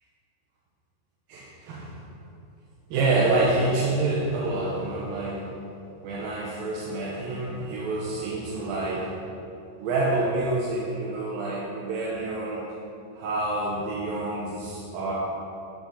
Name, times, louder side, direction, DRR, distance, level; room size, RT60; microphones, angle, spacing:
voice 1, 1.3-2.0 2.9-5.5 6.0-9.2 9.8-12.7 13.1-15.1, right 2 dB, 90° right, -4 dB, 2.8 m, -27 dB
11.0 x 6.3 x 5.6 m, 2.8 s
omnidirectional pair, 4.0 m